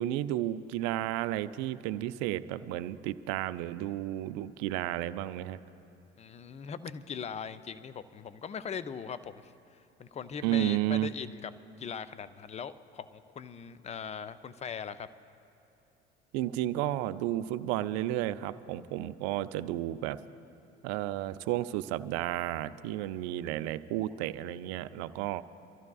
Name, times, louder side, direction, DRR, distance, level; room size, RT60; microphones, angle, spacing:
voice 1, 0.0-5.6 10.4-11.1 16.3-20.2 20.8-25.4, right 13 dB, 50° right, 14 dB, 0.5 m, -32 dB
voice 2, 6.2-11.5 11.8-15.1, left 7 dB, 20° left, 13 dB, 0.5 m, -40 dB
29.0 x 14.0 x 2.4 m, 2.8 s
figure-of-eight pair, 65°, 33 cm